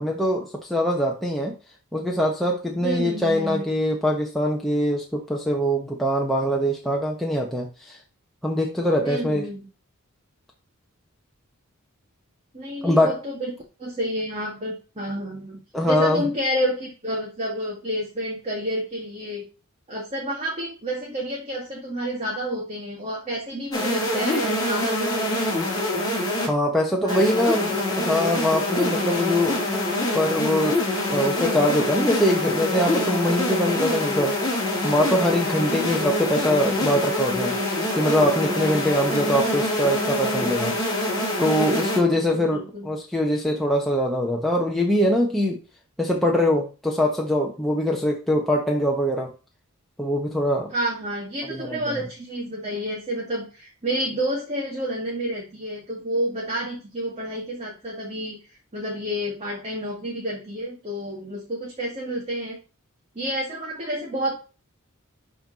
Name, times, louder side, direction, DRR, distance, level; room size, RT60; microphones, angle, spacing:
voice 1, 0.0-1.6 1.9-8.0 8.4-9.5 12.8-13.2 15.7-16.3 26.4-29.6 30.1-30.8 31.1-34.3 34.8-37.6 37.9-40.8 41.4-45.6 46.0-49.3 50.0-50.7 51.5-52.0, equal, ahead, -2 dB, 1.2 m, -23 dB
voice 2, 2.8-3.6 9.0-9.7 12.5-13.5 13.8-15.6 15.9-19.4 19.9-25.5 27.0-27.6 35.7-36.1 42.1-42.9 50.7-58.4 58.7-62.6 63.2-64.3, equal, 30° right, -3 dB, 2.2 m, -30 dB
sound 1, 23.7-26.5 27.1-42.0, left 1 dB, 20° left, 3.3 m, -25 dB
12.0 x 4.5 x 4.2 m, 0.33 s
head